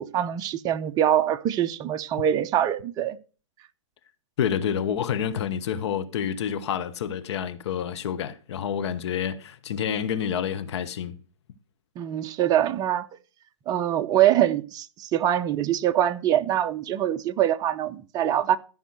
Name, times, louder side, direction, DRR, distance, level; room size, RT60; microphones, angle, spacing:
voice 1, 0.0-3.2 12.0-13.1 13.7-18.6, right 11 dB, 25° right, 0.6 m, -24 dB
voice 2, 4.4-11.2, left 8 dB, 60° left, 1.1 m, -28 dB
13.0 x 5.5 x 6.1 m
hypercardioid pair, 125°, 16 cm